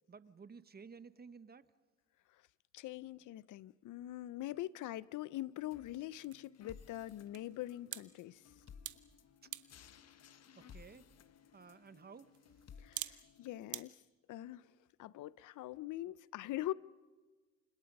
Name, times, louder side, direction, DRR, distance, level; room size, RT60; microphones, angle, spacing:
voice 1, 0.1-1.7 10.6-11.1 11.5-12.3, right 5 dB, 30° right, 1.1 m, -54 dB
voice 2, 2.7-8.4 12.8-14.0 14.3-14.7 15.0-16.7, left 15 dB, 80° left, 0.7 m, -43 dB
sound 1, 4.5-13.8, right 13 dB, 75° right, 1.2 m, -52 dB
sound 2, 5.7-13.7, left 7 dB, 55° left, 1.4 m, -59 dB
29.5 x 26.0 x 5.4 m
cardioid pair, 90°, 30 cm